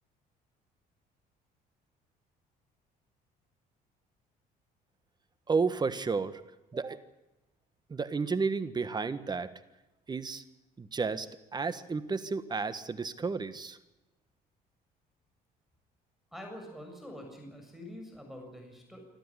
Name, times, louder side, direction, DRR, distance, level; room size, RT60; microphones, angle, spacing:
voice 1, 5.5-6.4 6.7-7.0 7.9-9.5 10.1-10.4 10.8-13.8, right 4 dB, 25° right, 13 dB, 1.5 m, -32 dB
voice 2, 16.3-19.1, equal, ahead, 3 dB, 7.1 m, -46 dB
25.0 x 13.5 x 9.9 m, 1.0 s
cardioid pair, 110°, 17 cm